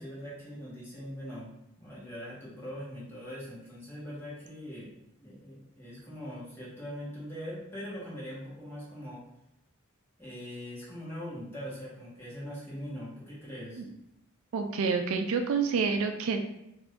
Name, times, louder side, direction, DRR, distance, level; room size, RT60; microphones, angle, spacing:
voice 1, 0.0-1.5 1.8-9.2 10.2-13.8, equal, 10° left, -8 dB, 1.2 m, -42 dB
voice 2, 14.5-16.4, right 5 dB, 70° right, 5 dB, 0.3 m, -28 dB
2.6 x 2.5 x 3.3 m, 0.84 s
head